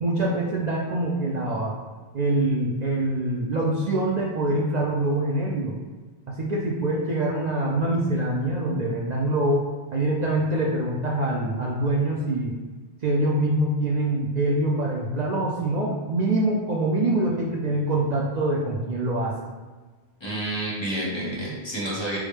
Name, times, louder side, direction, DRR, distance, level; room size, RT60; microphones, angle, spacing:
voice 1, 0.0-1.7 2.1-5.7 6.3-12.6 13.0-19.3, right 1 dB, 60° right, -3 dB, 0.4 m, -24 dB
voice 2, 20.2-22.2, right 1 dB, 25° left, -5 dB, 0.8 m, -29 dB
4.7 x 2.1 x 3.1 m, 1.4 s
omnidirectional pair, 1.2 m